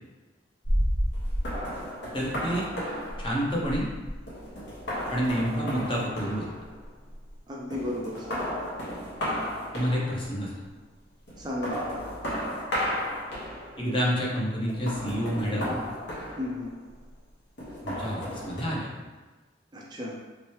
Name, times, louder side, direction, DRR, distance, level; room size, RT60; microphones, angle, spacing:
sound 1, 0.6-7.4 7.7-10.4 11.3-13.9 14.7-16.9 17.6-18.6, equal, 65° left, 1.0 m, -33 dB
voice 1, 2.1-2.6 3.2-3.9 5.1-6.5 9.7-10.5 13.8-15.8 17.8-18.9, equal, 25° left, -4 dB, 0.7 m, -28 dB
voice 2, 7.5-8.4 11.4-11.8 16.4-16.7 19.7-20.1, left 1 dB, 20° right, -3 dB, 0.4 m, -33 dB
3.1 x 3.0 x 3.1 m, 1.2 s
head